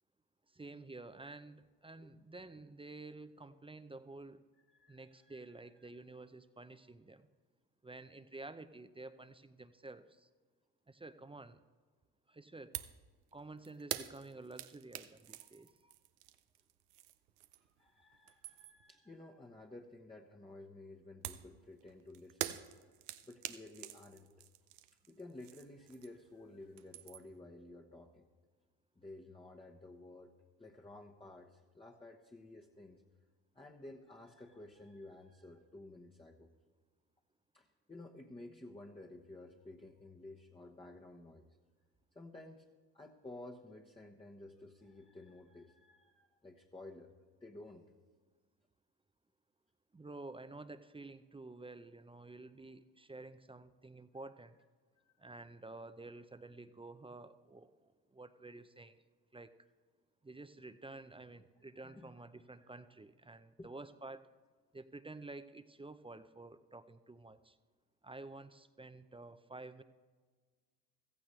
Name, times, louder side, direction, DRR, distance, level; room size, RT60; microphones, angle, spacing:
voice 1, 0.5-4.4 4.9-7.3 7.8-10.3 10.9-11.6 12.3-12.8 13.3-15.9 49.9-54.6 55.2-57.8 58.1-59.0 59.3-59.5 60.2-64.3 64.7-67.6 68.0-69.8, right 2 dB, 15° right, 11 dB, 0.6 m, -51 dB
voice 2, 4.7-5.9 17.8-22.6 23.2-24.5 25.1-28.2 29.0-30.3 30.6-33.0 33.5-36.5 37.5-41.5 42.1-42.6 42.9-47.1 47.4-47.8 55.0-55.1 61.8-62.1 62.6-62.7 63.6-63.7, left 2 dB, 15° left, 0 dB, 1.1 m, -53 dB
sound 1, 12.7-13.0 13.3-17.8 18.1-18.9 21.2-26.3 26.6-27.4, right 14 dB, 90° right, 0.6 m, -46 dB
15.5 x 14.5 x 3.2 m, 1.5 s
hypercardioid pair, 65°, 43 cm